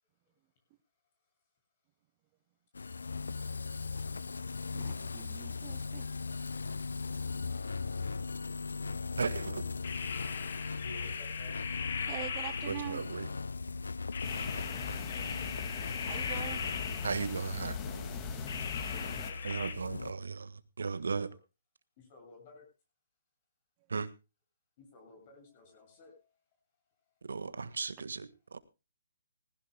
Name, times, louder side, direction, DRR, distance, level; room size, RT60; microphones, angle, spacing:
sound 1, 2.7-20.1, left 4 dB, 85° left, 0.6 m, -39 dB
voice 1, 4.7-6.1 12.1-13.0 16.0-16.6, right 17 dB, 30° right, 0.8 m, -43 dB
voice 2, 9.2-9.6 12.7-13.3 17.0-17.8 19.4-21.3 23.9-24.1 27.3-28.6, right 4 dB, 80° right, 1.5 m, -36 dB
sound 2, 9.8-13.2 14.1-17.5 18.5-19.7, left 6 dB, 55° left, 2.5 m, -39 dB
voice 3, 10.8-11.6 14.6-15.3 18.7-19.6 22.0-22.6 24.8-26.4, left 3 dB, 40° left, 7.8 m, -54 dB
sound 3, 14.2-19.3, left 6 dB, 20° left, 2.0 m, -43 dB
19.5 x 16.5 x 2.2 m
hypercardioid pair, 145°, 0 cm